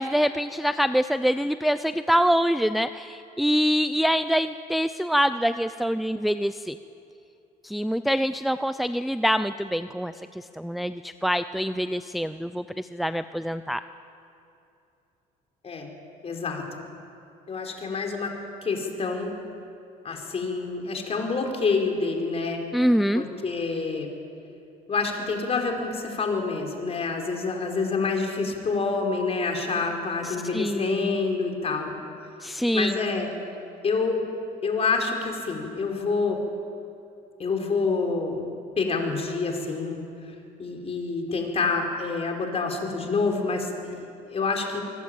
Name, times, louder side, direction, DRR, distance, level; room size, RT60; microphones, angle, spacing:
voice 1, 0.0-6.8 7.6-13.8 22.7-23.2 30.2-31.2 32.4-32.9, equal, ahead, 11 dB, 0.6 m, -25 dB
voice 2, 16.2-16.9 17.5-18.3 18.6-19.4 20.0-22.6 23.1-24.1 24.9-31.9 32.7-33.3 33.8-34.2 34.6-36.4 37.4-38.4 38.8-40.0 40.6-44.8, left 4 dB, 35° left, 3 dB, 4.7 m, -27 dB
24.5 x 20.0 x 8.9 m, 2.7 s
cardioid pair, 110°, 17 cm